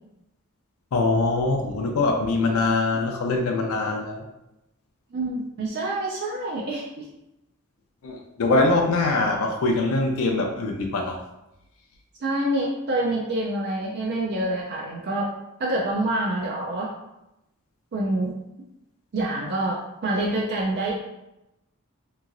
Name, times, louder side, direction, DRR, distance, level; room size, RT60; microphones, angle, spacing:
voice 1, 0.9-4.2 8.0-11.2, left 2 dB, 70° left, 2 dB, 0.4 m, -23 dB
voice 2, 5.1-7.1 12.2-15.3 15.6-16.9 17.9-18.3 19.1-20.9, right 1 dB, 50° right, -2 dB, 0.4 m, -26 dB
3.0 x 2.7 x 2.5 m, 0.91 s
head